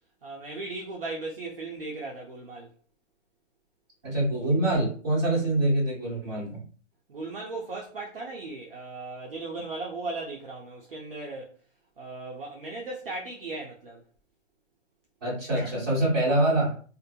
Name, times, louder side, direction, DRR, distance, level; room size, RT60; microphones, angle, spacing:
voice 1, 0.2-2.7 5.3-5.4 7.1-11.5 12.0-14.0 15.5-15.7, right 3 dB, 50° right, 0.5 m, -37 dB
voice 2, 4.0-6.6 15.2-16.7, right 1 dB, 20° right, 1.1 m, -25 dB
2.5 x 2.2 x 2.6 m
hypercardioid pair, 180°, 38 cm